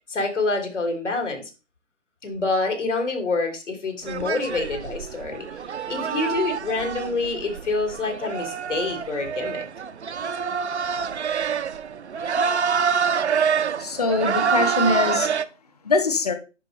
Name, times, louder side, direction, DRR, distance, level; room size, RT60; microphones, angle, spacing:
voice 1, 0.1-1.5 2.2-5.5 5.9-9.6, left 3 dB, 70° left, 3.0 m, -27 dB
sound 1, 4.1-15.4, right 6 dB, 60° right, 0.6 m, -26 dB
voice 2, 13.8-15.3 15.8-16.3, left 3 dB, 30° left, 1.0 m, -22 dB
10.5 x 4.9 x 3.1 m
hypercardioid pair, 165°, 38 cm